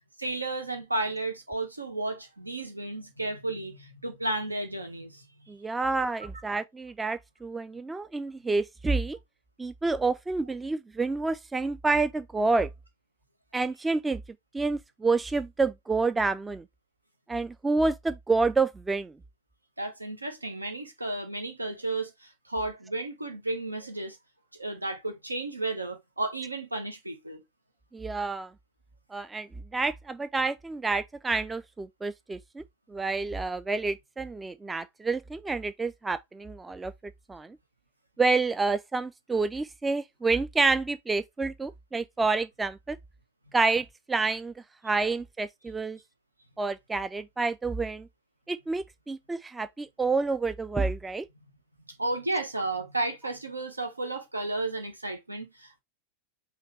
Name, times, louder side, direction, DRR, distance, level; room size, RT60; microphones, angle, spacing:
voice 1, 0.2-5.5 19.8-24.2 24.5-27.4 52.0-55.8, right 2 dB, 85° right, 1.2 m, -33 dB
voice 2, 5.5-9.2 9.6-12.7 13.5-14.2 14.5-16.6 17.3-19.1 27.9-28.5 29.1-32.6 32.9-36.9 37.3-37.6 38.2-43.0 43.5-44.5 44.8-46.0 46.6-48.1 48.5-51.2, right 3 dB, 10° right, 0.3 m, -28 dB
5.7 x 2.8 x 3.2 m
figure-of-eight pair, 90°, 0 cm